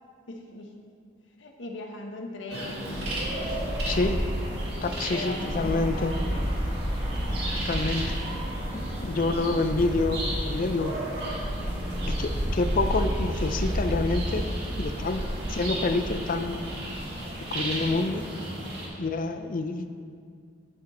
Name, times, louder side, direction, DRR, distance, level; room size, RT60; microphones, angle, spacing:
voice 1, 0.3-0.8 1.4-3.3 3.8-4.2 5.1-6.5, left 2 dB, 85° left, 2 dB, 1.0 m, -39 dB
sound 1, 2.5-18.9, equal, 60° right, 2.3 m, -30 dB
voice 2, 3.8-4.2 4.8-6.1 7.6-8.1 8.7-10.9 12.1-14.5 14.8-16.6 17.5-18.3 19.0-19.9, left 3 dB, 45° left, 9 dB, 0.5 m, -28 dB
9.4 x 7.4 x 4.2 m, 2.2 s
head